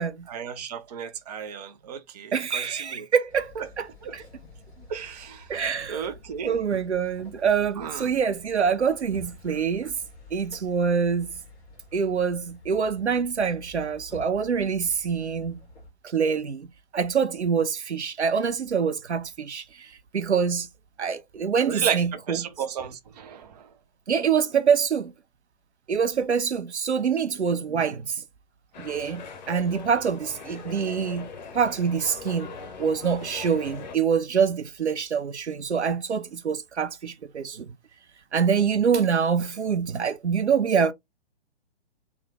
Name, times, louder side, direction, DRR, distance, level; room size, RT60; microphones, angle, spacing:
voice 1, 0.3-3.1 3.6-3.7 4.0-4.2 4.9-5.5 5.9-6.6 7.8-8.1 21.6-23.7, right 8 dB, 40° right, 0.5 m, -33 dB
voice 2, 2.3-3.9 4.1-4.2 5.5-6.1 6.4-9.9 10.3-11.3 11.9-15.6 16.0-16.7 16.9-20.7 21.0-22.4 24.1-25.1 25.9-28.2 28.8-31.3 31.5-37.7 38.3-40.9, right 6 dB, 80° right, 0.6 m, -25 dB
sound 1, 3.3-15.9, left 1 dB, 15° left, 1.0 m, -49 dB
sound 2, 28.7-34.0, left 5 dB, 40° left, 0.7 m, -41 dB
3.0 x 2.4 x 3.4 m
figure-of-eight pair, 120°, 33 cm